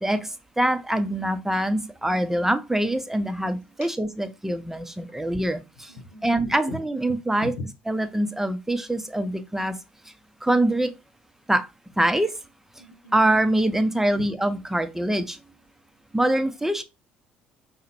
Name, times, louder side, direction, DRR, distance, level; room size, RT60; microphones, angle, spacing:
voice 1, 0.0-5.9 6.2-7.5 7.9-9.8 10.4-10.9 11.5-11.7 12.0-12.4 13.1-15.4 16.1-16.8, right 1 dB, 5° right, 0.5 m, -24 dB
voice 2, 5.9-6.8 7.4-7.6 12.8-13.2 14.1-14.2, left 3 dB, 80° left, 0.7 m, -38 dB
4.9 x 2.1 x 2.8 m
hypercardioid pair, 55°, 5 cm